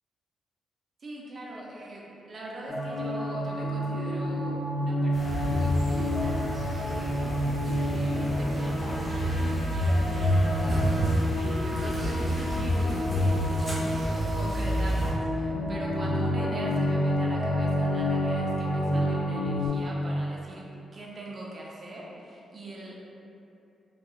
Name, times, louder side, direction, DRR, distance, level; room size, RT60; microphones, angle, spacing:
voice 1, 1.0-6.3 6.8-20.7 20.9-23.0, right 1 dB, 45° right, -4 dB, 0.5 m, -42 dB
sound 1, 2.7-19.7, equal, 65° left, 0.6 m, -29 dB
sound 2, 5.1-15.1, equal, 5° left, 0.7 m, -28 dB
2.7 x 2.2 x 2.3 m, 2.7 s
cardioid pair, 105°, 0 cm